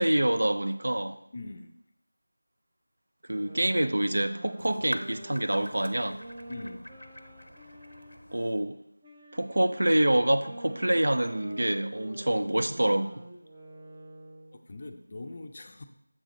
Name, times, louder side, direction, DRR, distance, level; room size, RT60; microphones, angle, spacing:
voice 1, 0.0-1.2 3.3-6.2 8.3-8.8 9.3-13.1, right 1 dB, 65° right, 9 dB, 0.5 m, -26 dB
voice 2, 1.3-1.7 6.5-6.8 14.5-15.9, left 2 dB, 35° left, 7 dB, 0.5 m, -42 dB
sound 1, 3.3-8.5 9.0-14.6, right 1 dB, 20° right, 0.8 m, -47 dB
sound 2, 4.6-8.6, equal, 90° left, 0.6 m, -44 dB
7.3 x 5.1 x 3.8 m, 0.78 s
figure-of-eight pair, 170°, 0 cm